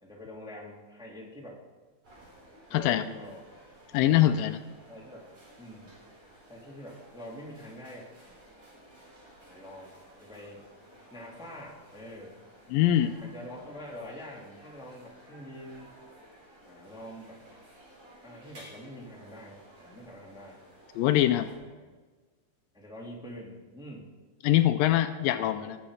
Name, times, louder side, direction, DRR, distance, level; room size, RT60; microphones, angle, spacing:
voice 1, 0.0-1.6 2.7-3.5 4.0-4.4 4.9-5.3 5.6-5.9 6.5-8.1 9.4-10.6 11.1-12.4 13.2-16.0 16.6-17.4 18.2-20.6 21.5-21.9 22.7-24.1 25.2-25.7, equal, ahead, -3 dB, 1.9 m, -45 dB
sound 1, 2.0-21.5, equal, 40° right, 5.6 m, -55 dB
voice 2, 2.7-3.0 3.9-4.6 12.7-13.1 21.0-21.5 24.4-25.8, left 13 dB, 80° left, 10 dB, 2.3 m, -23 dB
19.0 x 7.9 x 5.0 m, 1.3 s
omnidirectional pair, 4.1 m